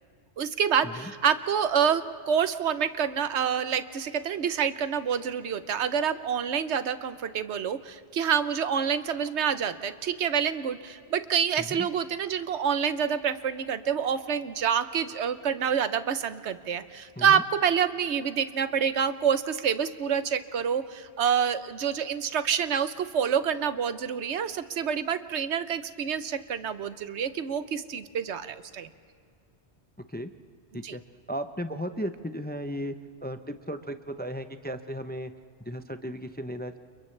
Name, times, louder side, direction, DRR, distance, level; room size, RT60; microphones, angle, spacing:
voice 1, 0.4-28.9 30.8-30.9, right 7 dB, 90° right, 12 dB, 1.1 m, -27 dB
voice 2, 31.3-33.0 33.2-35.3 35.6-36.8, equal, 10° left, 9 dB, 0.5 m, -35 dB
30.0 x 29.5 x 3.3 m, 2.4 s
omnidirectional pair, 1.1 m